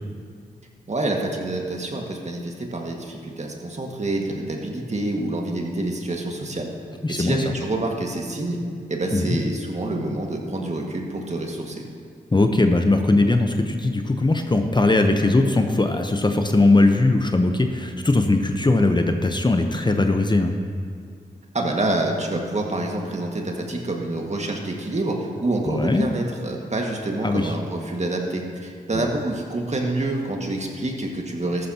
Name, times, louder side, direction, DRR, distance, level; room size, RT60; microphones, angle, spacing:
voice 1, 0.9-6.7 7.1-8.6 8.9-11.8 21.5-31.7, right 2 dB, 40° right, 1 dB, 1.9 m, -27 dB
voice 2, 7.0-7.4 9.1-9.4 12.3-20.5 25.6-26.1 27.2-27.5 28.9-29.1, left 2 dB, 25° left, 5 dB, 1.0 m, -20 dB
13.5 x 12.0 x 3.0 m, 2.1 s
supercardioid pair, 40°, 18 cm